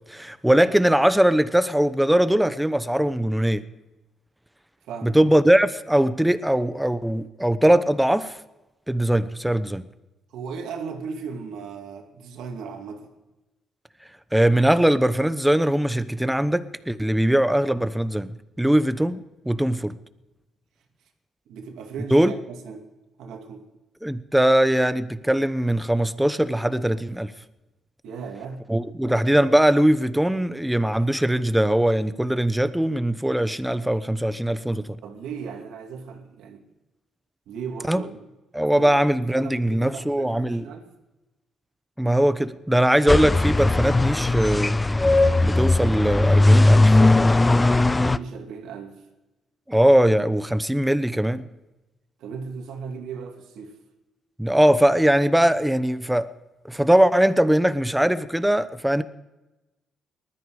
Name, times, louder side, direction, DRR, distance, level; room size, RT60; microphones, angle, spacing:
voice 1, 0.1-3.6 5.0-8.4 8.9-9.9 14.3-20.0 22.1-22.3 24.0-27.3 28.7-35.0 37.9-38.0 38.5-40.7 42.0-44.8 45.4-46.9 49.7-51.4 54.4-56.3 56.6-59.0, right 1 dB, 5° right, 0.9 m, -21 dB
voice 2, 4.8-5.2 10.3-13.1 21.5-22.9 23.2-23.7 28.0-28.6 35.0-36.6 37.5-38.3 38.7-38.9 39.2-40.9 48.0-49.0 52.2-53.7, right 5 dB, 85° right, 2.5 m, -36 dB
sound 1, 43.1-48.2, left 2 dB, 20° left, 0.5 m, -18 dB
20.0 x 13.0 x 4.9 m
cardioid pair, 90°, 0 cm